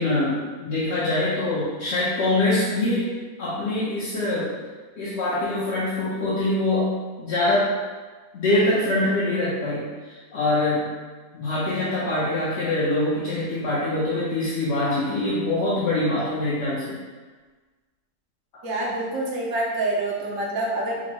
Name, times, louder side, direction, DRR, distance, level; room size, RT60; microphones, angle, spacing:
voice 1, 0.0-3.1 3.4-4.5 5.0-7.7 8.3-10.9 11.3-17.0, left 2 dB, 60° left, -9 dB, 0.9 m, -24 dB
voice 2, 18.6-21.1, right 2 dB, 70° right, -3 dB, 1.0 m, -26 dB
5.1 x 2.1 x 2.8 m, 1.4 s
omnidirectional pair, 1.5 m